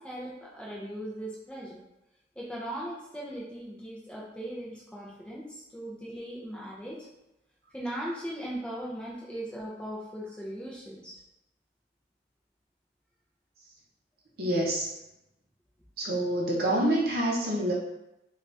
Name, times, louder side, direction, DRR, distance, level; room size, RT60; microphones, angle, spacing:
voice 1, 0.0-1.8 2.4-7.1 7.7-11.2, right 1 dB, 5° left, -5 dB, 0.4 m, -38 dB
voice 2, 14.4-14.9 16.0-17.7, right 1 dB, 55° right, -3 dB, 0.7 m, -27 dB
2.7 x 2.3 x 3.2 m, 0.91 s
head